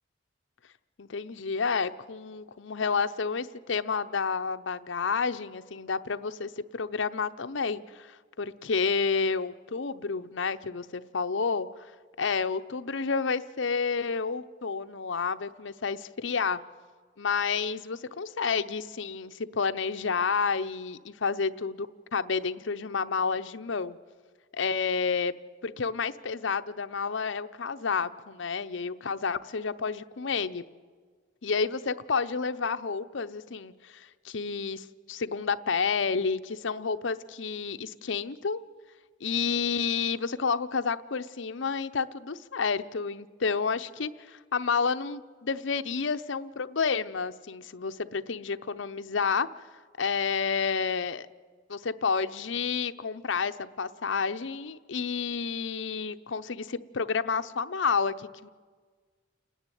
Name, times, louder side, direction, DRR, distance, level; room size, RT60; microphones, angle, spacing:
voice 1, 1.0-11.7 12.2-16.6 17.2-24.0 24.5-25.3 25.6-30.6 31.4-38.6 39.2-49.5 50.0-51.3 51.7-58.5, left 5 dB, 75° left, 10 dB, 0.7 m, -30 dB
29.5 x 10.0 x 9.2 m, 1.5 s
head